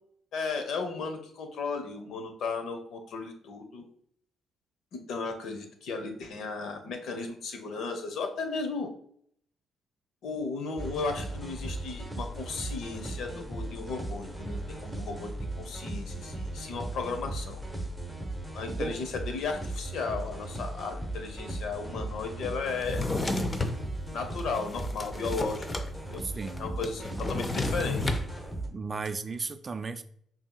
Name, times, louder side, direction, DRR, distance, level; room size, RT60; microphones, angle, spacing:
voice 1, 0.3-3.8 4.9-8.9 10.2-15.3 15.6-17.6 18.5-23.0 24.1-26.2 26.6-28.0, left 4 dB, 75° left, 6 dB, 0.7 m, -35 dB
sound 1, 10.8-28.7, right 2 dB, ahead, 1.0 m, -37 dB
Drawer open or close, 22.8-23.8 24.4-25.9 26.1-26.2 26.5-28.3, left 2 dB, 25° left, 0.5 m, -31 dB
voice 2, 26.4-26.8 28.7-30.0, right 4 dB, 35° right, 11 dB, 0.4 m, -35 dB
5.5 x 2.7 x 2.3 m, 0.64 s
cardioid pair, 90°, 0 cm